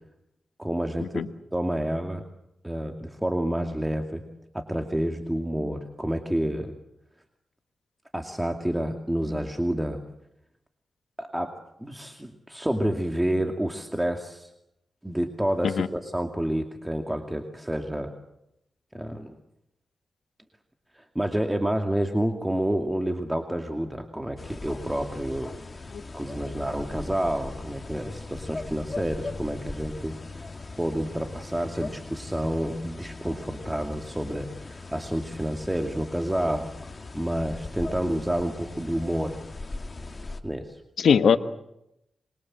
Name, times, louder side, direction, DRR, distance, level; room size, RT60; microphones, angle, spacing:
voice 1, 0.6-1.1 1.5-2.2 2.6-4.2 4.5-6.7 8.1-10.0 11.2-11.5 11.8-14.5 15.0-18.1 18.9-19.3 20.9-36.7 37.1-39.4 40.4-40.8, right 1 dB, 10° right, 4 dB, 2.4 m, -29 dB
sound 1, 24.4-40.4, left 3 dB, 40° left, 2.5 m, -39 dB
voice 2, 41.0-41.4, left 7 dB, 90° left, 10 dB, 1.3 m, -21 dB
26.5 x 22.5 x 7.7 m, 0.83 s
cardioid pair, 70°, 0 cm